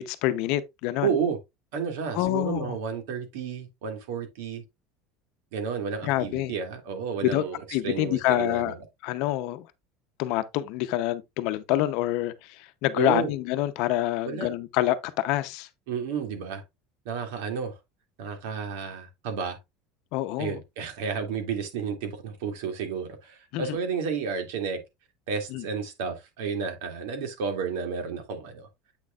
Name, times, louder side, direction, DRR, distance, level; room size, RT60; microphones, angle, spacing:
voice 1, 0.0-1.1 2.1-2.8 6.0-6.5 7.2-7.4 7.7-8.7 9.0-9.7 10.2-15.7 20.1-20.6 23.5-23.8 25.5-25.6, left 15 dB, 55° left, 0.8 m, -27 dB
voice 2, 1.0-1.4 1.7-4.6 5.5-8.7 13.0-13.3 14.2-14.5 15.9-16.6 17.0-17.8 18.2-19.6 20.4-24.8 25.3-28.7, right 6 dB, 75° right, 2.5 m, -31 dB
8.1 x 6.4 x 2.4 m
cardioid pair, 165°, 0 cm